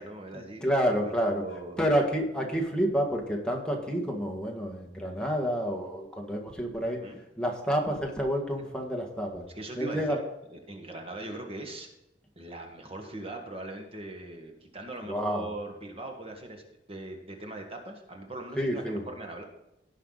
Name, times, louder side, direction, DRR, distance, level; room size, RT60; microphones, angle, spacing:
voice 1, 0.0-0.7 1.0-1.8 7.0-7.2 9.5-10.2 10.5-11.9 12.3-16.6 16.9-19.4, right 2 dB, 35° right, 3 dB, 1.5 m, -40 dB
voice 2, 0.6-1.4 1.8-7.0 7.4-9.4 9.7-10.2 15.0-15.5 18.6-19.0, equal, 5° left, 0 dB, 1.7 m, -29 dB
17.5 x 5.8 x 4.0 m, 0.90 s
head